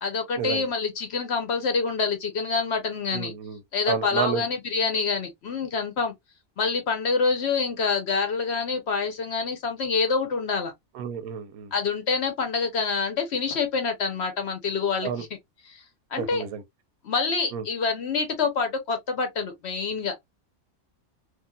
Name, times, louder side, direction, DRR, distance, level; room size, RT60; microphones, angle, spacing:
voice 1, 0.0-3.3 3.7-6.1 6.6-10.7 11.7-15.3 15.7-15.8 16.1-16.4 17.0-20.1, left 4 dB, 55° left, 0.9 m, -26 dB
voice 2, 3.1-3.6 3.9-4.4 10.9-11.7 15.0-15.2 16.2-16.6 17.5-17.6, right 7 dB, 85° right, 1.1 m, -30 dB
3.1 x 2.5 x 2.2 m
omnidirectional pair, 1.5 m